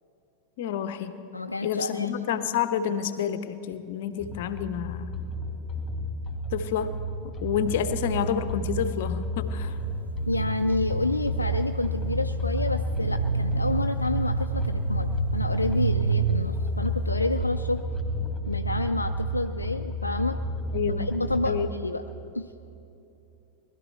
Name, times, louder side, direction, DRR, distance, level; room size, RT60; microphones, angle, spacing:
voice 1, 0.6-1.2 1.6-5.1 6.5-7.0 7.2-9.8 20.7-21.2 21.4-21.7, left 8 dB, 50° left, 11 dB, 0.8 m, -29 dB
voice 2, 1.3-2.2 10.3-17.8 18.5-20.4 21.0-22.0 22.3-22.5, left 2 dB, 80° left, 7 dB, 0.4 m, -29 dB
sound 1, 4.2-21.5, right 1 dB, 20° left, 2.1 m, -31 dB
sound 2, 9.4-17.1, right 5 dB, 75° right, 0.4 m, -31 dB
20.0 x 12.5 x 4.4 m, 2.8 s
figure-of-eight pair, 90°, 0 cm